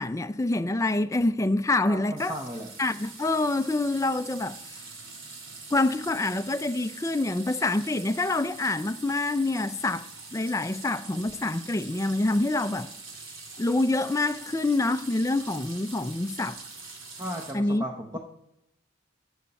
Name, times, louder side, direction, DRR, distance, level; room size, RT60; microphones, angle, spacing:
voice 1, 0.0-2.3 2.8-4.6 5.7-12.9 13.6-16.6 17.5-17.8, left 2 dB, 15° left, 0.4 m, -26 dB
voice 2, 1.9-2.7 17.2-18.2, equal, 20° right, 0.8 m, -35 dB
sound 1, 2.2-17.5, right 3 dB, 80° right, 2.7 m, -44 dB
14.0 x 8.0 x 4.2 m
head